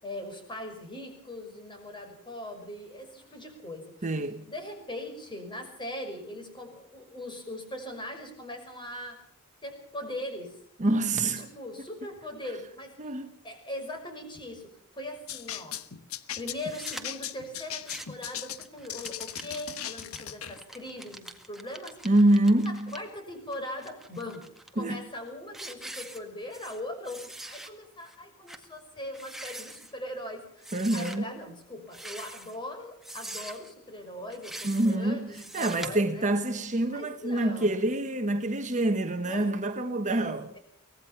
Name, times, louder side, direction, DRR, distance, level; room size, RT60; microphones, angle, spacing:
voice 1, 0.0-3.9 4.5-9.2 9.6-10.6 11.4-13.0 13.4-15.8 16.4-22.1 22.6-24.5 24.7-36.2 36.9-37.9 39.2-39.5 40.1-40.6, left 1 dB, 20° left, 5.8 m, -40 dB
voice 2, 4.0-4.5 10.8-11.5 13.0-13.3 22.0-23.0 24.8-25.0 30.7-31.3 34.6-40.5, right 1 dB, 35° right, 1.2 m, -26 dB
sound 1, 15.3-20.6, left 10 dB, 65° left, 1.1 m, -38 dB
sound 2, 16.5-17.0 17.7-18.3 18.6-23.0 23.5-24.7 25.1-25.3 25.5-26.8 27.0-27.7 28.1-28.2 28.5-28.6 29.1-29.9 30.6-31.2 31.9-32.6 33.0-33.7 34.3-35.0 35.3-35.9, right 1 dB, ahead, 1.8 m, -43 dB
24.0 x 18.5 x 5.9 m
head